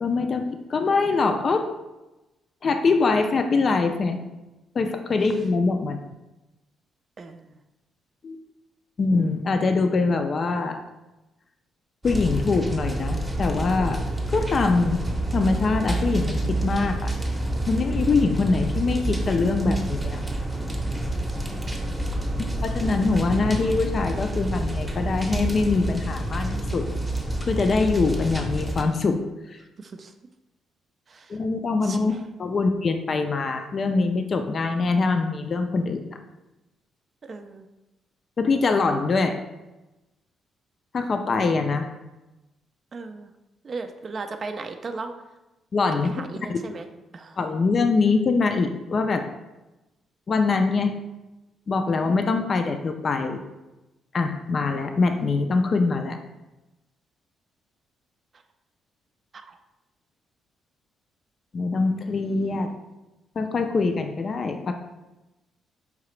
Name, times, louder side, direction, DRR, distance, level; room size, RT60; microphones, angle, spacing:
voice 1, 0.0-1.7 2.6-4.2 4.8-6.0 8.2-8.4 9.0-10.8 12.0-14.0 14.3-15.0 15.3-17.1 17.7-20.2 22.4-26.9 27.4-29.2 29.5-29.6 31.3-32.1 32.4-36.2 38.4-39.4 40.9-41.9 45.7-46.6 47.4-49.3 50.3-51.0 51.7-53.4 54.1-56.2 61.5-62.7 63.4-64.7, left 4 dB, 45° left, 6 dB, 0.4 m, -23 dB
sound 1, 12.0-28.8, right 1 dB, 5° right, 0.7 m, -28 dB
voice 2, 29.8-30.1 31.1-31.3 31.8-32.2 37.2-37.7 42.9-43.3 43.6-45.1 46.1-46.9 47.1-47.4 59.3-59.6, right 4 dB, 40° right, 6 dB, 0.3 m, -36 dB
4.8 x 2.8 x 3.1 m, 1.0 s
cardioid pair, 90°, 0 cm